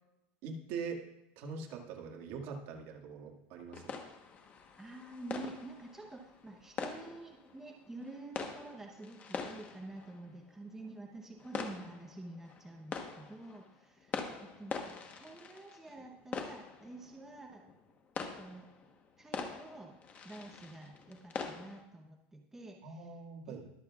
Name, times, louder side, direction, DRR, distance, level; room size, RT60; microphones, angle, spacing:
voice 1, 0.4-1.0 1.4-3.9 22.8-23.7, right 5 dB, 50° right, 1 dB, 2.0 m, -43 dB
sound 1, 3.7-21.8, left 5 dB, 25° left, 1.1 m, -44 dB
voice 2, 4.8-14.2 14.6-17.6 18.2-18.7 19.2-19.9 20.2-23.1 23.5-23.6, right 2 dB, 5° right, 1 dB, 0.9 m, -49 dB
22.0 x 7.6 x 2.4 m, 0.89 s
supercardioid pair, 160°, 6 cm